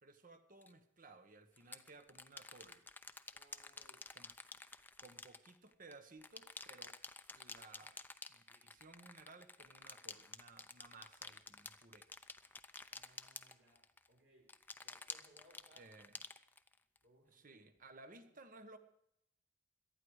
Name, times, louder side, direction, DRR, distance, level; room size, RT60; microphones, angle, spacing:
voice 1, 0.0-2.8 4.1-4.6 5.0-7.0 7.3-8.0 8.3-12.1 15.8-16.1 17.3-18.8, right 3 dB, 45° right, 9 dB, 1.3 m, -59 dB
sound 1, 0.6-0.7 1.6-5.9 6.2-14.1 14.5-17.0, left 3 dB, 10° left, 0.6 m, -51 dB
voice 2, 3.3-4.1 12.9-15.9 17.0-18.3, right 1 dB, 70° right, -1 dB, 6.5 m, -69 dB
18.0 x 12.5 x 4.9 m, 0.78 s
head